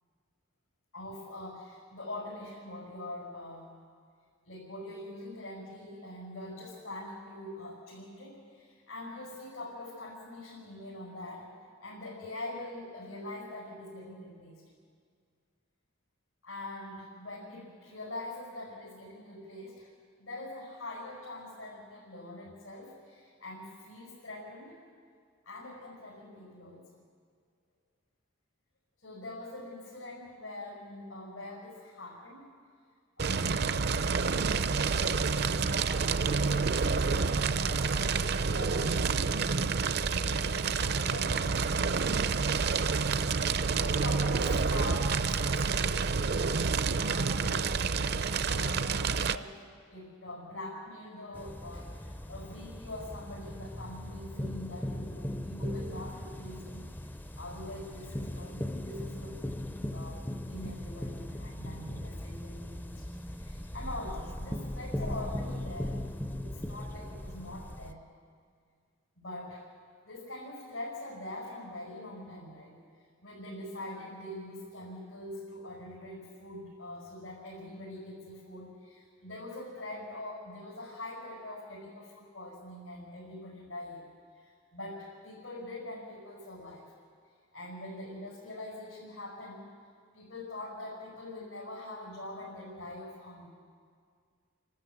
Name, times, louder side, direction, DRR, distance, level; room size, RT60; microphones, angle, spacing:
voice 1, 0.9-3.7 4.4-11.5 11.8-14.6 16.4-19.9 20.2-24.8 25.4-27.0 29.0-32.5 33.2-33.6 34.7-42.3 42.5-43.0 43.4-48.0 48.4-63.1 63.4-66.0 66.4-68.0 69.2-69.7 70.0-72.8 73.2-84.1 84.3-86.9 87.5-89.7 90.1-93.5, left 1 dB, 90° left, -5 dB, 5.4 m, -44 dB
Fire, 33.2-49.4, right 4 dB, 50° right, 0.5 m, -28 dB
sound 1, 51.3-67.9, left 1 dB, 10° left, 0.5 m, -39 dB
29.5 x 13.0 x 8.1 m, 2.1 s
head